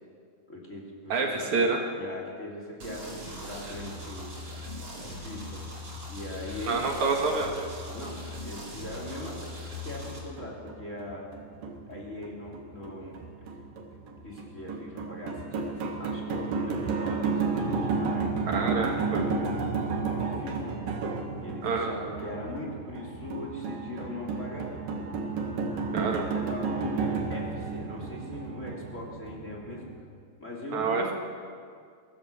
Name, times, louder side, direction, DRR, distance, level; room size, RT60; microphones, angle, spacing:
voice 1, 0.5-1.6 1.9-4.3 5.0-5.6 6.1-6.8 7.9-9.5 9.8-11.3 11.9-13.2 13.6-13.7 14.2-18.3 19.1-20.7 21.4-24.7 25.9-29.9 30.4-31.1, left 1 dB, 20° left, -1 dB, 3.6 m, -40 dB
voice 2, 1.1-1.8 6.7-7.8 18.5-19.2 21.6-21.9 25.9-26.3 30.7-31.1, right 4 dB, 60° right, 1 dB, 3.1 m, -27 dB
sound 1, 2.8-10.2, left 1 dB, 40° right, 5.2 m, -40 dB
sound 2, 10.2-30.0, right 4 dB, 80° right, 3.6 m, -32 dB
23.5 x 16.5 x 7.1 m, 2.2 s
omnidirectional pair, 3.8 m